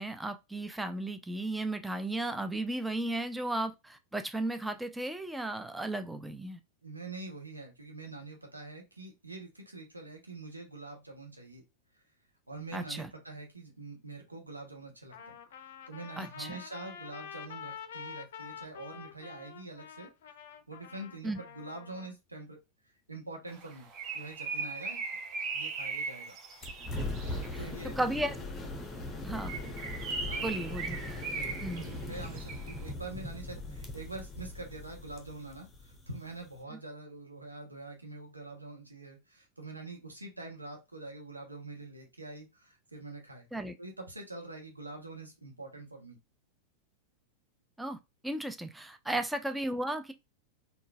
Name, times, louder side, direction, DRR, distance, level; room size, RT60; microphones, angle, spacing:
voice 1, 0.0-6.6 12.7-13.1 16.2-16.6 21.2-21.4 27.5-27.6 28.0-28.3 29.2-29.5 30.4-31.0 31.6-31.8 43.5-43.7 47.8-48.0 48.2-50.1, right 1 dB, 5° right, 0.3 m, -34 dB
voice 2, 6.8-11.6 12.5-15.3 15.6-20.1 20.4-22.6 23.1-23.9 24.1-25.0 25.5-26.3 27.2-28.2 30.2-30.6 31.3-43.5 43.8-46.2 49.1-49.2, right 2 dB, 80° right, 0.9 m, -45 dB
Trumpet, 15.1-22.1, left 8 dB, 55° left, 0.4 m, -47 dB
Bird, 23.6-27.7 29.3-32.8, right 4 dB, 40° right, 0.7 m, -38 dB
sound 1, 26.6-36.6, left 2 dB, 20° left, 0.8 m, -40 dB
3.8 x 2.3 x 2.3 m
figure-of-eight pair, 90°, 0 cm